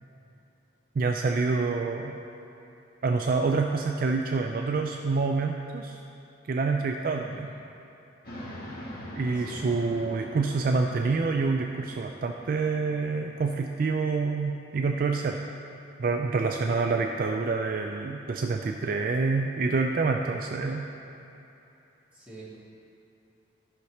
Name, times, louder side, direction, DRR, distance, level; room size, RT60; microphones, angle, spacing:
voice 1, 1.0-2.2 3.0-6.0 6.5-7.5 9.2-15.4 16.0-20.9, right 4 dB, 45° right, 3 dB, 0.3 m, -27 dB
voice 2, 7.3-7.6 9.2-9.8 16.6-17.1 22.1-22.6, equal, 5° right, -10 dB, 2.0 m, -45 dB
sound 1, 8.2-13.7, equal, 50° left, 1.4 m, -44 dB
13.5 x 5.7 x 3.2 m, 2.9 s
head